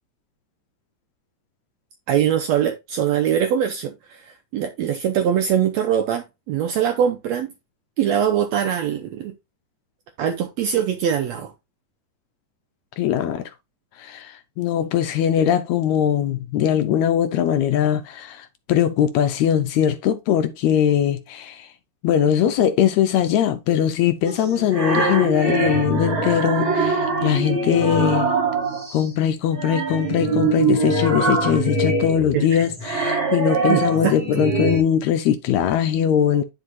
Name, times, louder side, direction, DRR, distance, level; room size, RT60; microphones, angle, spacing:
voice 1, 2.1-7.5 8.0-9.3 10.2-11.5 32.3-32.6 33.7-34.4, right 9 dB, 75° right, 1.6 m, -22 dB
voice 2, 13.0-13.5 14.0-21.7 22.0-28.4 28.9-36.4, left 9 dB, 75° left, 1.7 m, -21 dB
sound 1, 24.2-29.0 29.5-34.8, right 3 dB, 40° right, 6.0 m, -23 dB
10.0 x 4.8 x 2.6 m
omnidirectional pair, 3.7 m